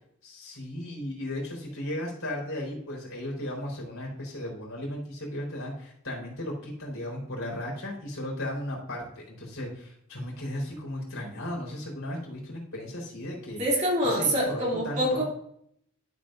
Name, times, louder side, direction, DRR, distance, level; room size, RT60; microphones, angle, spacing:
voice 1, 0.2-13.6 14.0-15.2, left 1 dB, 70° left, -3 dB, 4.0 m, -35 dB
voice 2, 13.6-15.2, equal, 35° right, -3 dB, 2.8 m, -25 dB
12.5 x 7.1 x 2.6 m, 0.68 s
head